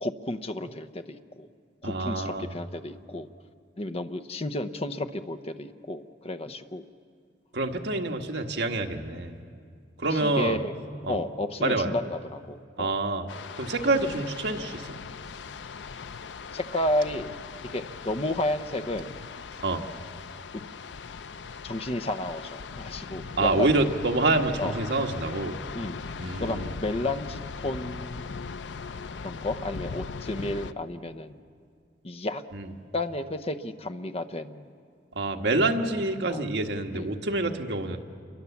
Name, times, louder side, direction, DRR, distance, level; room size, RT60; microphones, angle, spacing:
voice 1, 0.0-1.5 1.8-3.3 3.8-6.8 10.1-10.7 11.1-12.9 16.5-19.2 20.5-20.6 21.6-23.7 24.6-24.8 25.7-26.0 26.4-28.5 29.2-31.4 32.0-32.4 32.9-34.7 36.3-36.4 36.9-37.1, left 1 dB, 35° left, 10 dB, 0.8 m, -32 dB
voice 2, 1.8-2.5 7.5-9.3 10.0-10.6 11.0-11.2 11.6-11.9 12.8-13.2 13.6-15.0 19.6-19.8 23.4-25.6 26.2-26.7 32.5-32.7 35.1-38.0, right 2 dB, 70° right, 4 dB, 1.5 m, -27 dB
sound 1, 13.3-30.7, left 5 dB, 85° left, 0.6 m, -39 dB
28.5 x 23.0 x 7.2 m, 2.2 s
head